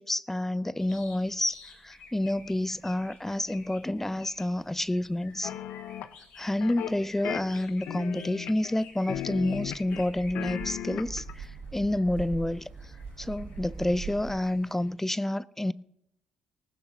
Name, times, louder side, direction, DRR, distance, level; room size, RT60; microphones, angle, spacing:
voice 1, 0.0-5.5 6.4-12.9 13.2-15.7, left 1 dB, 10° left, 0.5 m, -29 dB
sound 1, 0.8-14.9, left 4 dB, 85° left, 5.2 m, -53 dB
sound 2, 5.4-6.1 6.6-7.0 7.2-8.8 9.1-10.0 10.3-11.3, left 11 dB, 65° left, 0.8 m, -36 dB
sound 3, 9.1-14.4, right 5 dB, 55° right, 1.2 m, -42 dB
19.0 x 17.0 x 2.8 m
hypercardioid pair, 50°, 3 cm